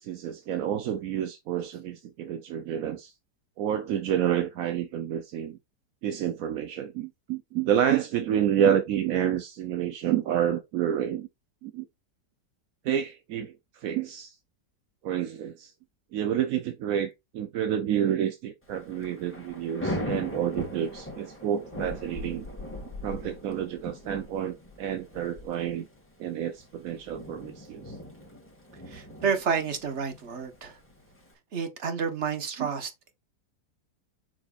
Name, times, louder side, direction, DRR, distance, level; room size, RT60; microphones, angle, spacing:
voice 1, 0.0-3.1 3.6-5.6 6.0-11.3 11.6-11.8 12.8-13.5 13.8-14.3 15.0-15.7 16.1-22.6 23.0-25.9 26.2-28.0 32.6-32.7, right 10 dB, 65° right, 0.9 m, -29 dB
Thunder / Rain, 18.7-31.3, left 1 dB, 5° left, 1.9 m, -40 dB
voice 2, 28.9-30.8 31.5-33.1, right 6 dB, 40° right, 1.4 m, -30 dB
7.0 x 5.9 x 2.5 m
omnidirectional pair, 2.0 m